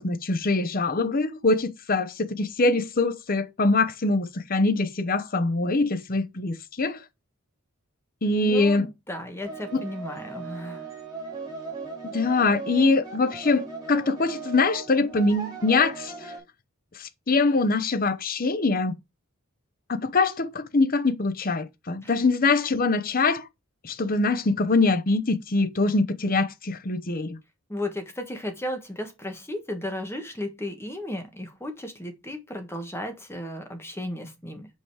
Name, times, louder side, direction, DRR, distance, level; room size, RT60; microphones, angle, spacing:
voice 1, 0.0-7.0 8.2-8.9 9.7-9.8 12.1-16.3 17.0-18.9 19.9-23.5 23.8-27.4, left 3 dB, 40° left, 0.8 m, -23 dB
voice 2, 8.4-10.8 22.0-22.1 27.7-34.7, left 1 dB, 10° left, 1.4 m, -34 dB
sound 1, 9.4-16.4, right 4 dB, 20° right, 2.5 m, -37 dB
5.4 x 5.1 x 4.7 m
head